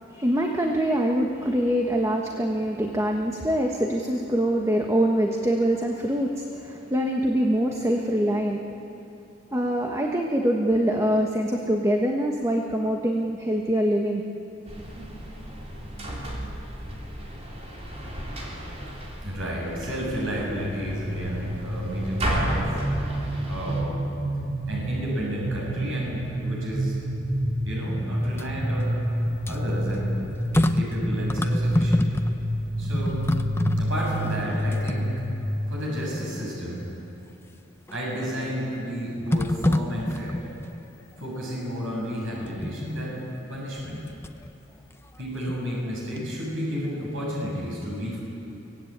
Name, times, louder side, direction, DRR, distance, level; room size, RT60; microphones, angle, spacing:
voice 1, 0.1-8.6 9.5-14.2, equal, 15° right, 1 dB, 1.4 m, -24 dB
sound 1, 14.7-23.8, equal, 35° right, 3.4 m, -34 dB
voice 2, 19.2-22.8 23.5-23.9 24.7-27.0 27.6-29.0 29.5-30.2 30.5-32.1 32.8-33.3 33.8-35.1 35.7-36.9 37.9-40.5 41.2-44.0 45.2-48.2, equal, 85° right, -4 dB, 7.4 m, -31 dB
sound 2, 20.4-36.3, equal, 55° right, 5.8 m, -29 dB
sound 3, 28.2-32.5 32.8-35.6 36.1-36.2 37.9-38.4 39.3-40.8 42.4-42.9 43.8-44.5 44.9-45.9 46.2-46.3, left 1 dB, 15° left, 0.8 m, -28 dB
24.0 x 18.0 x 8.9 m, 2.9 s
head